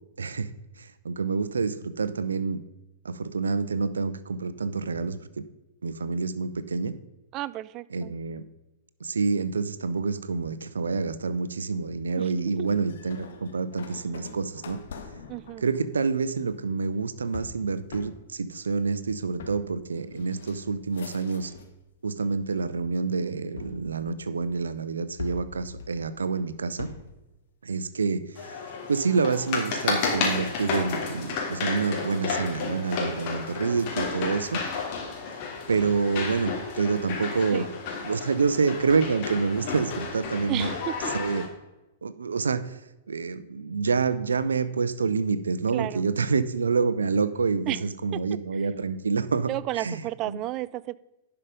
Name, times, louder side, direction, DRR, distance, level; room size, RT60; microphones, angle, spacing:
voice 1, 0.2-0.5 0.8-2.6 3.0-5.2 5.8-6.9 7.9-8.4 9.0-14.8 15.6-21.5 22.0-26.9 27.6-28.6 28.9-34.6 35.7-37.7 38.0-40.7 41.1-41.5 42.0-42.8 43.1-50.4, right 4 dB, 80° right, 14 dB, 0.6 m, -27 dB
voice 2, 7.3-8.1 12.2-12.3 12.6-12.7 15.3-15.6 37.5-37.7 40.5-41.0 45.7-46.0 47.7-47.8 49.5-51.0, right 15 dB, 35° right, 18 dB, 0.4 m, -32 dB
sound 1, 12.7-21.8 22.2-22.8 23.6-24.6 25.2-27.2, left 5 dB, 70° left, 1.4 m, -44 dB
sound 2, 28.3-41.4, left 5 dB, 45° left, 2.8 m, -32 dB
11.0 x 5.8 x 5.1 m, 0.99 s
hypercardioid pair, 105°, 0 cm